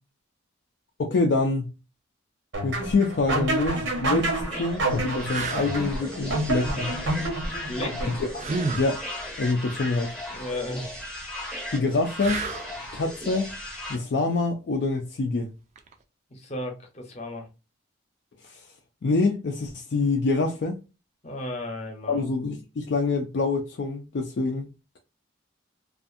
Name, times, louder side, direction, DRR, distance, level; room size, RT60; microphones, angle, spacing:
voice 1, 1.0-1.7 2.6-6.9 8.1-8.4 8.8-9.0 9.4-10.1 11.7-12.4 12.9-13.5 13.9-15.5 18.4-18.6 19.0-20.8 22.1-24.7, left 3 dB, 60° left, 0.4 m, -26 dB
sound 1, 2.5-8.4, right 1 dB, 80° right, 1.0 m, -28 dB
sound 2, 4.4-13.9, left 1 dB, 5° left, 0.6 m, -37 dB
sound 3, 5.3-5.7 8.4-8.9 12.2-12.8 15.7-15.9, right 3 dB, 40° right, 0.4 m, -30 dB
voice 2, 7.7-8.1 10.3-10.9 16.3-17.5 21.2-22.2, left 1 dB, 35° left, 0.7 m, -34 dB
2.5 x 2.4 x 2.4 m
head